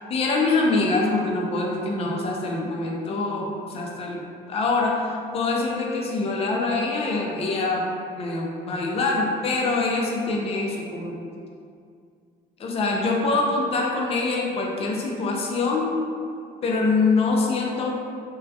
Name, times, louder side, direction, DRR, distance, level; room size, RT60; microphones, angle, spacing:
voice 1, 0.1-4.2 4.5-7.9 8.2-11.2 12.6-16.0 16.6-18.0, left 3 dB, 35° left, -1 dB, 0.4 m, -24 dB
2.2 x 2.1 x 2.6 m, 2.3 s
cardioid pair, 110°, 17 cm